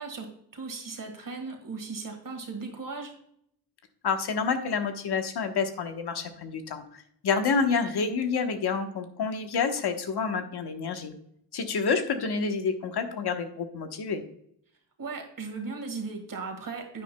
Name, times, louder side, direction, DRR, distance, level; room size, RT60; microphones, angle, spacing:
voice 1, 0.0-3.1 15.0-17.0, right 4 dB, 55° right, 3 dB, 1.8 m, -37 dB
voice 2, 4.0-11.1 11.5-14.2, left 5 dB, 80° left, 6 dB, 1.2 m, -28 dB
9.9 x 9.1 x 2.3 m, 0.70 s
cardioid pair, 95°, 39 cm